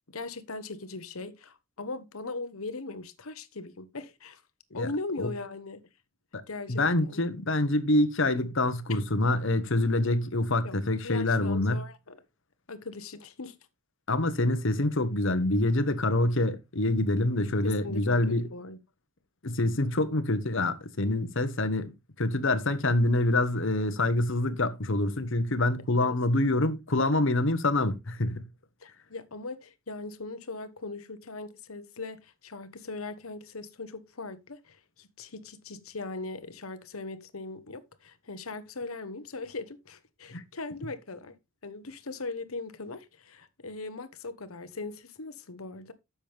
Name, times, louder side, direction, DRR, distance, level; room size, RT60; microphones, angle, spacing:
voice 1, 0.1-4.4 4.7-5.8 6.5-7.2 8.9-9.0 10.6-10.8 11.0-12.2 12.7-13.5 17.6-18.8 25.9-26.2 28.8-41.4 41.6-45.9, left 3 dB, 85° left, 1.2 m, -39 dB
voice 2, 6.7-11.8 14.1-18.5 19.4-21.9 22.2-28.4 40.3-40.4, left 2 dB, 60° left, 1.2 m, -26 dB
10.5 x 7.1 x 3.4 m
head